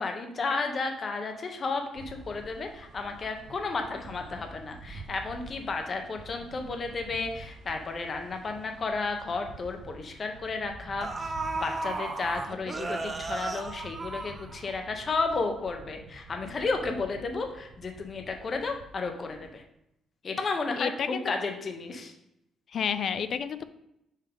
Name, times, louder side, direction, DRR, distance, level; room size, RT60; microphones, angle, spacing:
voice 1, 0.0-19.6 20.2-22.1, left 3 dB, 45° left, 5 dB, 0.8 m, -33 dB
sound 1, 1.9-19.5, right 3 dB, 75° right, 0.6 m, -48 dB
sound 2, 8.8-8.9 9.3-9.5 10.5-10.6 11.0-14.9 15.3-15.4, right 3 dB, 30° right, 0.6 m, -34 dB
voice 2, 20.8-21.2 22.7-23.6, left 7 dB, 60° left, 13 dB, 0.4 m, -30 dB
5.5 x 3.5 x 5.0 m, 0.83 s
cardioid pair, 90°, 0 cm